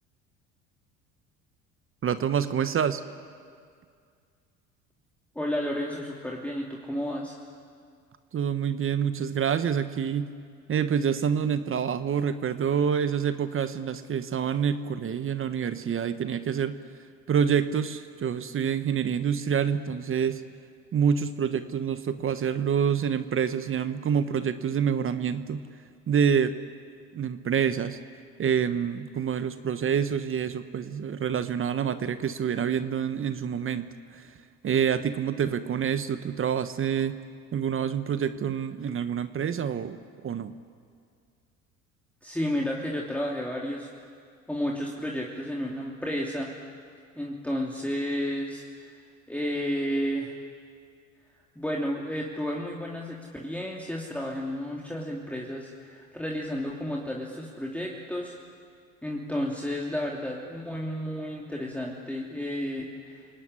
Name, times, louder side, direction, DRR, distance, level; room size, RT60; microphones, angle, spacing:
voice 1, 2.0-3.0 8.3-10.3 10.7-16.8 17.3-20.4 20.9-25.6 26.1-26.6 27.1-28.0 28.4-33.9 34.1-34.2 34.6-37.2 37.5-40.0 40.2-40.5, right 7 dB, 40° right, 11 dB, 1.2 m, -27 dB
voice 2, 5.3-7.3 42.2-43.9 44.5-46.5 47.2-49.0 49.3-50.4 51.5-58.4 59.0-63.3, equal, 5° left, -2 dB, 3.0 m, -32 dB
28.0 x 18.5 x 9.8 m, 2.2 s
hypercardioid pair, 75°, 34 cm